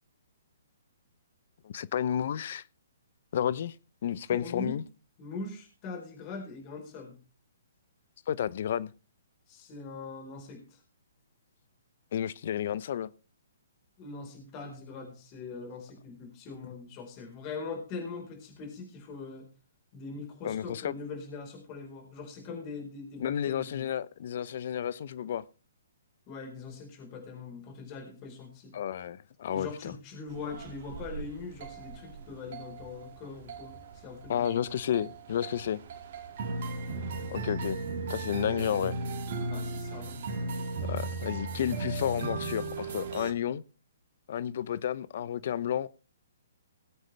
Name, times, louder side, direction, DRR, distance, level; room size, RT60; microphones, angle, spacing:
voice 1, 1.6-2.6 3.3-3.7 4.0-4.8 8.3-8.9 12.1-13.1 20.4-20.9 23.2-25.4 28.7-29.9 34.3-35.8 37.3-37.8 38.1-39.0 40.9-43.6 44.3-45.9, left 9 dB, 55° left, 0.7 m, -31 dB
voice 2, 4.3-4.8 5.2-7.1 9.5-10.8 14.0-19.5 19.9-23.9 26.3-28.7 29.5-34.6 39.5-40.2, left 4 dB, 30° left, 4.3 m, -42 dB
sound 1, 30.3-43.3, right 3 dB, 50° right, 2.2 m, -37 dB
19.5 x 8.1 x 3.3 m
hypercardioid pair, 135°, 0 cm